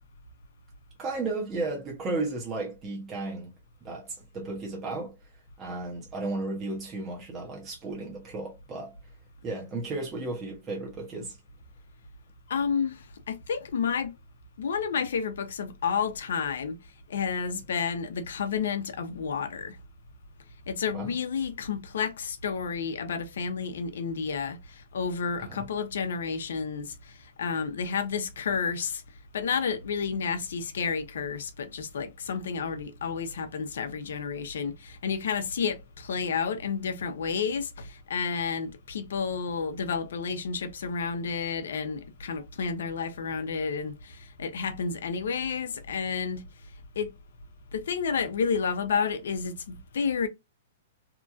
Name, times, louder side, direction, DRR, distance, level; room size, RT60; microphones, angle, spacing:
voice 1, 1.0-3.5 3.8-5.1 5.6-9.0 9.4-11.4 20.9-21.1 25.4-25.7, right 3 dB, 20° right, 0.9 m, -34 dB
voice 2, 12.5-14.2 14.6-16.8 17.1-19.8 20.7-29.0 29.3-46.4 47.0-47.1 47.7-50.3, left 6 dB, 80° left, 0.7 m, -31 dB
2.9 x 2.6 x 2.4 m
hypercardioid pair, 165°, 0 cm